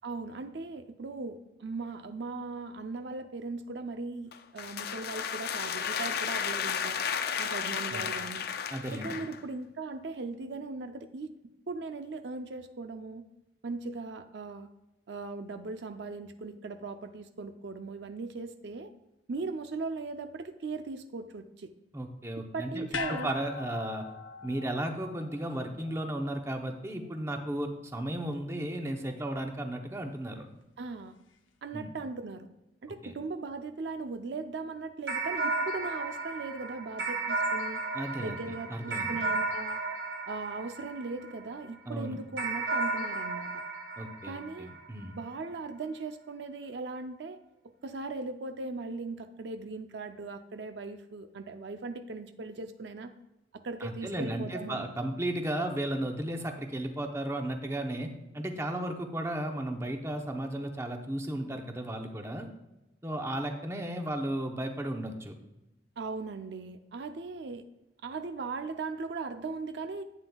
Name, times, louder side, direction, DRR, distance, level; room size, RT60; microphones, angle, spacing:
voice 1, 0.0-7.0 7.4-8.5 8.9-11.3 11.7-13.3 13.6-14.7 15.1-18.9 19.3-21.7 22.5-23.3 30.8-31.2 31.6-32.5 32.8-37.8 38.2-39.8 40.3-43.6 44.3-44.7 45.1-47.4 47.8-53.1 53.5-54.9 66.0-67.6 68.0-70.0, right 3 dB, 65° right, 8 dB, 0.5 m, -38 dB
sound 1, 4.3-9.4, left 7 dB, 55° left, 0.4 m, -33 dB
voice 2, 8.7-9.2 21.9-24.0 24.4-30.5 31.7-31.9 33.0-33.1 37.9-38.4 38.7-39.2 41.9-42.2 44.0-45.1 53.8-62.5 63.0-65.4, right 1 dB, 15° right, 4 dB, 0.8 m, -34 dB
sound 2, 22.9-27.3 27.6-27.7, left 5 dB, 80° left, 0.8 m, -42 dB
sound 3, 35.1-41.7 42.4-45.1, right 3 dB, 85° right, 3.3 m, -34 dB
11.0 x 8.8 x 2.3 m, 0.94 s
head